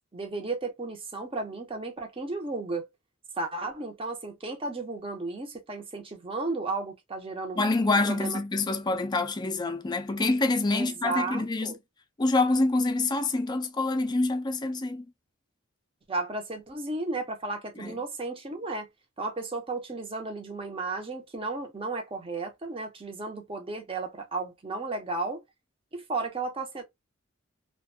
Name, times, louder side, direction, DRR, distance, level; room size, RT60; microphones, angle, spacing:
voice 1, 0.1-2.9 3.4-7.6 8.0-8.4 10.7-11.8 16.1-18.9 19.2-25.4 25.9-26.8, right 3 dB, 25° right, 0.6 m, -34 dB
voice 2, 7.6-11.7 12.2-15.0 17.8-18.0, left 2 dB, 20° left, 0.3 m, -26 dB
2.5 x 2.2 x 2.5 m
head